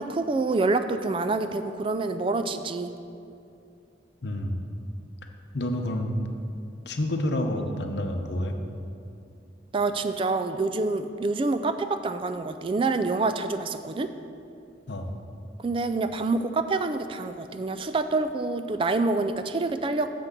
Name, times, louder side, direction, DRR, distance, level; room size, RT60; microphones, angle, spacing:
voice 1, 0.0-2.9 9.7-14.1 15.6-20.1, right 3 dB, 30° right, 10 dB, 0.3 m, -27 dB
voice 2, 4.2-4.6 5.5-6.2 6.9-8.6 14.9-15.1, left 1 dB, 65° left, 5 dB, 0.7 m, -28 dB
6.8 x 6.0 x 6.7 m, 2.6 s
head